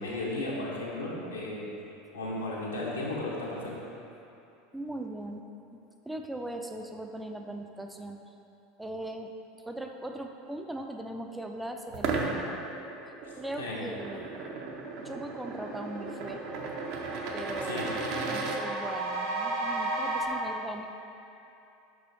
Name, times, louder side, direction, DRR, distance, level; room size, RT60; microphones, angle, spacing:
voice 1, 0.0-1.8 2.1-3.8 13.2-13.8 15.0-15.1 17.6-17.9, left 2 dB, 75° left, -5 dB, 1.0 m, -35 dB
voice 2, 4.7-5.4 5.7-5.8 6.1-8.3 8.8-9.3 9.7-12.6 13.3-14.3 15.0-16.4 17.3-17.9 18.3-20.9, right 1 dB, 5° right, 3 dB, 0.4 m, -39 dB
sound 1, 11.9-18.6, right 4 dB, 55° right, 0.6 m, -36 dB
sound 2, 14.5-14.6 14.9-20.2, right 2 dB, 70° right, 1.1 m, -35 dB
6.0 x 5.3 x 3.3 m, 2.8 s
figure-of-eight pair, 75°, 0 cm